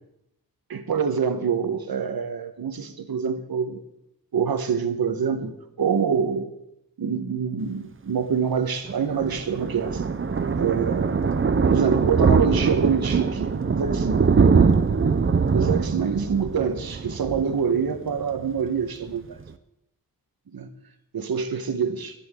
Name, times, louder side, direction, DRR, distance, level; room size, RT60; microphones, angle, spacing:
voice 1, 0.7-3.8 4.3-5.5 5.8-6.4 7.0-10.0 10.6-11.1 11.7-14.2 14.6-14.7 15.5-19.2 20.5-20.7 21.1-22.1, right 6 dB, 80° right, 1.5 m, -25 dB
Thunder, 8.9-18.3 18.6-18.8 19.1-19.2 19.4-19.5, right 5 dB, 35° right, 0.7 m, -22 dB
24.5 x 10.5 x 3.8 m
wide cardioid pair, 125°, 36 cm